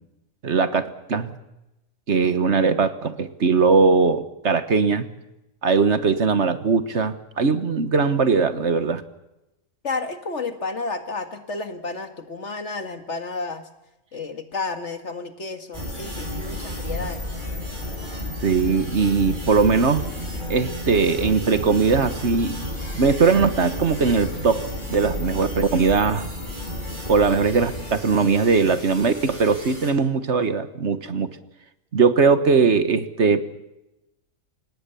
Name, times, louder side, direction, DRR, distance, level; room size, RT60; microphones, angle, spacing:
voice 1, 0.4-1.3 2.1-5.0 5.6-9.0 18.4-20.1 20.5-22.6 22.9-26.3 27.1-31.3 31.9-33.4, right 4 dB, 60° right, 12 dB, 1.6 m, -20 dB
voice 2, 9.8-13.7 14.1-17.2, left 3 dB, 60° left, 8 dB, 2.3 m, -31 dB
sound 1, 15.7-29.9, left 1 dB, 35° right, 8.2 m, -32 dB
29.0 x 18.0 x 7.0 m, 0.93 s
omnidirectional pair, 1.4 m